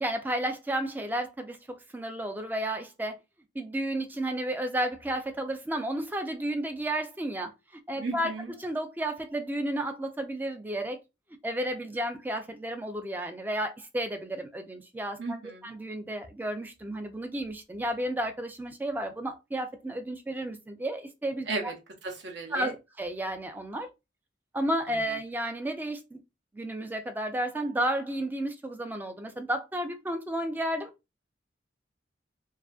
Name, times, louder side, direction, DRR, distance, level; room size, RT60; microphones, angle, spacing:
voice 1, 0.0-3.2 3.6-7.5 7.9-8.3 8.6-11.0 11.4-15.2 15.6-21.7 22.5-23.9 24.5-26.2 26.5-30.9, right 1 dB, 10° right, 0.3 m, -32 dB
voice 2, 8.0-8.5 15.2-15.7 21.5-21.7 22.0-22.7, right 3 dB, 70° right, 0.7 m, -35 dB
2.4 x 2.4 x 2.3 m
head